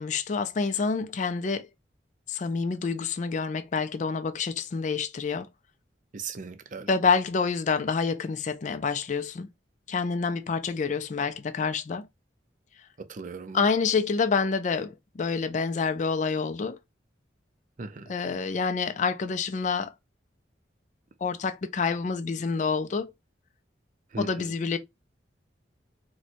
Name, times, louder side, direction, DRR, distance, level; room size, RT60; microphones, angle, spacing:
voice 1, 0.0-1.7 2.3-5.5 6.9-9.5 9.9-12.1 13.5-16.8 18.1-19.9 21.2-23.1 24.2-24.8, left 5 dB, 40° left, 0.4 m, -27 dB
voice 2, 6.1-6.9 13.1-13.7 17.8-18.1 24.1-24.5, right 4 dB, 45° right, 0.5 m, -38 dB
4.3 x 2.2 x 2.4 m
head